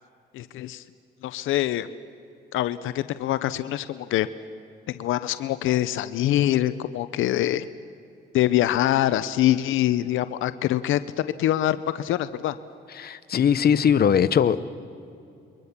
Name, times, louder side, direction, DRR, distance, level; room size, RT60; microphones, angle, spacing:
voice 1, 0.3-0.8 1.2-1.9 2.5-4.3 4.9-7.7 8.3-12.5, left 13 dB, 85° left, 13 dB, 0.7 m, -24 dB
voice 2, 13.0-14.7, left 8 dB, 50° left, 13 dB, 0.9 m, -20 dB
28.5 x 23.0 x 7.3 m, 2.6 s
cardioid pair, 90°, 20 cm